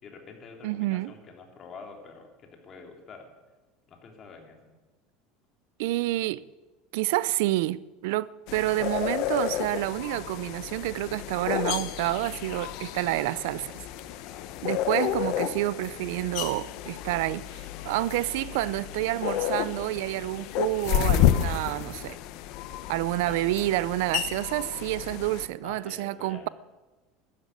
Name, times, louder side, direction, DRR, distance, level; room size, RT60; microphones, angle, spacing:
voice 1, 0.0-3.3 3.9-4.6 14.2-14.7 23.2-23.5 25.6-26.5, left 5 dB, 35° left, 3.3 m, -47 dB
voice 2, 0.6-1.1 5.8-6.5 6.9-13.7 14.6-22.2 22.9-26.5, right 18 dB, 75° right, 0.5 m, -29 dB
sound 1, 8.5-25.5, left 12 dB, 60° left, 1.1 m, -31 dB
12.5 x 10.5 x 9.4 m
supercardioid pair, 130°, 0 cm